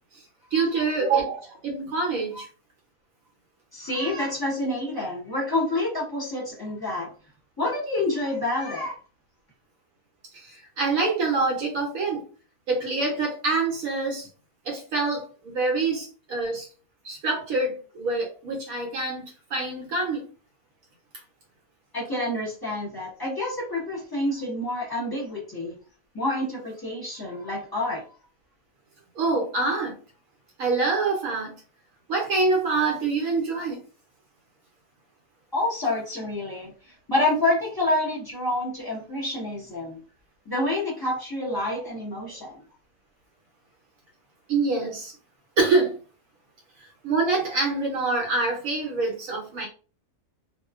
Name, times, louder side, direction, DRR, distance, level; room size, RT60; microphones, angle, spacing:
voice 1, 0.5-2.5 10.3-12.3 12.7-14.3 14.6-16.7 17.0-19.2 19.5-20.3 29.1-30.0 30.6-31.5 32.1-33.8 44.5-45.1 45.6-46.0 46.8-49.7, right 3 dB, 70° right, 0 dB, 1.0 m, -25 dB
voice 2, 3.7-7.1 7.6-9.0 21.9-25.8 26.1-28.0 35.5-36.7 37.1-40.0 40.5-42.5, left 2 dB, 20° left, -5 dB, 0.8 m, -28 dB
2.5 x 2.1 x 2.3 m, 0.36 s
omnidirectional pair, 1.6 m